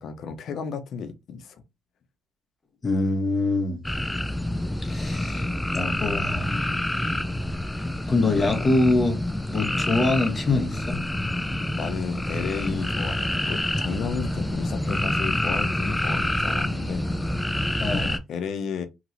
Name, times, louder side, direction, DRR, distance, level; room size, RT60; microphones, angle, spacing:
voice 1, 0.0-1.6 11.7-17.1 18.0-18.9, left 6 dB, 70° left, 0.7 m, -33 dB
voice 2, 2.8-3.8 4.8-5.5 5.7-6.7 8.1-9.2 9.5-11.0 17.8-18.1, left 2 dB, 30° left, 1.1 m, -24 dB
sound 1, 3.8-18.2, left 1 dB, 10° left, 0.4 m, -27 dB
2.9 x 2.9 x 2.6 m
cardioid pair, 90°, 0 cm